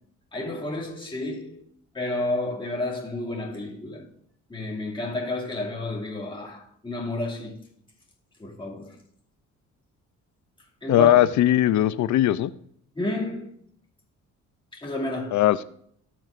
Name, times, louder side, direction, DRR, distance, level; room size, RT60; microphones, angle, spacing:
voice 1, 0.3-1.6 1.9-4.1 4.5-7.6 8.4-9.0 10.8-11.1 12.9-13.5 14.7-15.5, left 2 dB, 15° left, 2.5 m, -31 dB
voice 2, 10.9-12.5 15.3-15.6, left 13 dB, 70° left, 0.6 m, -19 dB
18.0 x 6.0 x 2.6 m
cardioid pair, 90°, 30 cm